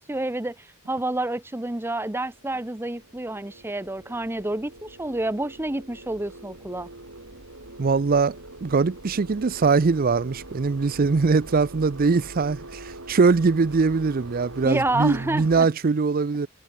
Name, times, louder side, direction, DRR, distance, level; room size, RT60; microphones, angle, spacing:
voice 1, 0.1-6.9 14.6-15.7, right 2 dB, 10° right, 0.8 m, -29 dB
sound 1, 1.9-15.6, right 2 dB, 80° right, 5.8 m, -43 dB
voice 2, 7.8-16.5, right 4 dB, 45° right, 0.5 m, -22 dB
head